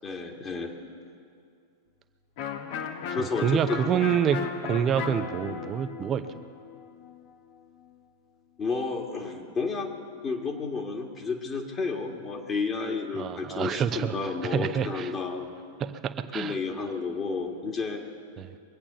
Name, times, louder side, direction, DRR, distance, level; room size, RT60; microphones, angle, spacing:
voice 1, 0.0-0.7 3.1-4.0 8.6-9.9 10.2-15.5 16.3-18.0, left 4 dB, 25° left, 1 dB, 1.9 m, -31 dB
Electric guitar, 2.4-8.0, left 7 dB, 50° left, 1.3 m, -37 dB
voice 2, 3.2-4.4 4.6-6.3 13.1-15.1 15.8-16.6 18.4-18.6, right 8 dB, 30° right, 10 dB, 0.8 m, -27 dB
23.0 x 8.6 x 6.8 m, 2.4 s
figure-of-eight pair, 95°, 0 cm